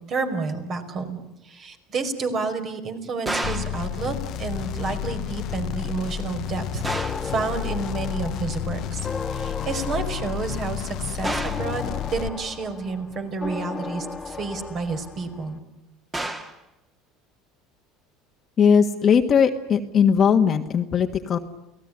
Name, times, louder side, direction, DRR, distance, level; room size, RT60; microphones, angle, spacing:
voice 1, 0.1-9.0 9.3-15.6, right 4 dB, 40° right, 7 dB, 5.0 m, -30 dB
sound 1, 3.3-3.8 6.8-7.3 11.2-11.7 16.1-16.6, right 1 dB, 15° right, 2.7 m, -30 dB
sound 2, 3.4-12.3, left 11 dB, 50° left, 1.1 m, -31 dB
sound 3, 6.9-15.6, left 4 dB, 15° left, 2.1 m, -36 dB
voice 2, 18.6-21.4, left 7 dB, 35° left, 4 dB, 1.6 m, -19 dB
29.5 x 18.0 x 9.9 m, 0.92 s
supercardioid pair, 120°, 0 cm